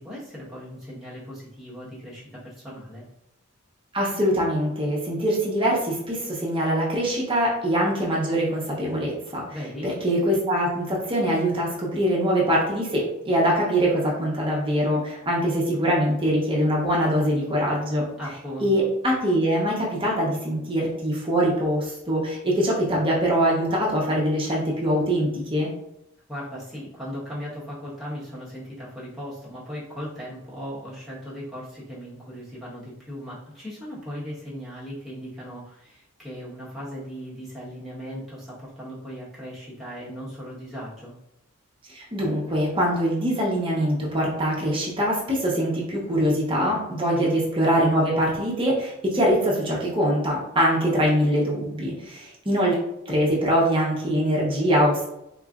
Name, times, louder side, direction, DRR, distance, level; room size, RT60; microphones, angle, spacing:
voice 1, 0.0-3.0 9.5-9.9 18.2-18.7 26.3-41.1 47.1-47.4, equal, ahead, -9 dB, 1.1 m, -37 dB
voice 2, 3.9-9.4 9.8-18.1 18.6-25.7 41.9-55.0, equal, 25° right, -4 dB, 0.7 m, -23 dB
3.7 x 3.0 x 2.4 m, 0.84 s
head